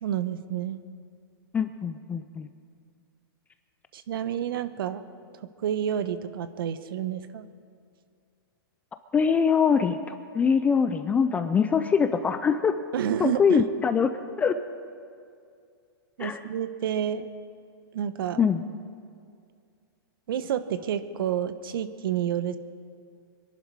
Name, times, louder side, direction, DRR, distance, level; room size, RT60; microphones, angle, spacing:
voice 1, 0.0-0.8 3.9-5.0 5.6-7.5 12.9-13.6 16.2-17.3 17.9-18.4 20.3-22.6, right 9 dB, 65° right, 12 dB, 1.1 m, -29 dB
voice 2, 1.5-2.5 9.1-12.7 13.2-14.1 14.4-14.5 16.2-16.4 18.4-18.6, left 6 dB, 10° left, 9 dB, 0.4 m, -23 dB
25.0 x 11.5 x 4.8 m, 2.3 s
hypercardioid pair, 150°, 13 cm